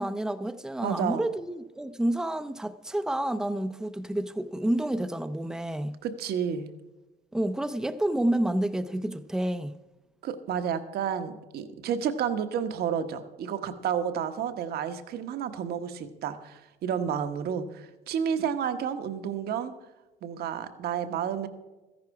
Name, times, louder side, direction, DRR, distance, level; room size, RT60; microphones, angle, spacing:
voice 1, 0.0-6.0 7.3-9.7, right 1 dB, 5° right, 0.5 m, -29 dB
voice 2, 0.8-1.2 6.0-6.7 10.2-19.7 20.2-21.5, right 8 dB, 70° right, 1.1 m, -31 dB
14.0 x 10.5 x 4.7 m
cardioid pair, 110°, 17 cm